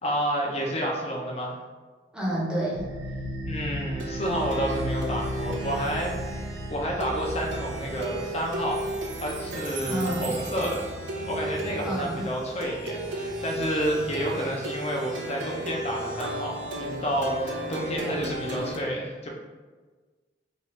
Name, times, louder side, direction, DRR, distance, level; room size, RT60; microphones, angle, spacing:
voice 1, 0.0-1.6 3.5-8.8 9.2-10.9 11.3-19.3, equal, 35° left, -1 dB, 0.5 m, -30 dB
voice 2, 2.1-2.9 9.8-10.4 11.8-12.3, right 1 dB, 5° right, -6 dB, 0.7 m, -29 dB
Plucked string instrument, 2.7-18.8, right 1 dB, 85° right, 0.5 m, -33 dB
3.0 x 2.4 x 3.0 m, 1.4 s
head